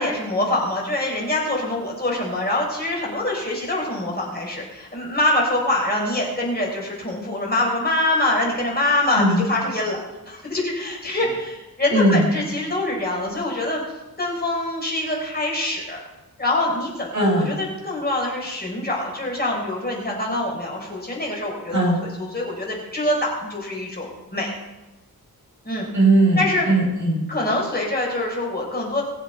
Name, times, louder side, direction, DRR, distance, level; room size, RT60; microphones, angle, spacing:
voice 1, 0.0-10.0 10.3-13.8 14.2-16.0 16.4-24.5 25.6-25.9 26.4-26.6 27.3-29.0, left 1 dB, 25° left, -2 dB, 4.5 m, -24 dB
voice 2, 11.9-12.2 17.1-17.6 21.7-22.0 25.9-26.4 26.7-27.3, right 2 dB, 50° right, -4 dB, 5.8 m, -18 dB
22.0 x 7.4 x 4.5 m, 1.0 s
wide cardioid pair, 120°, 36 cm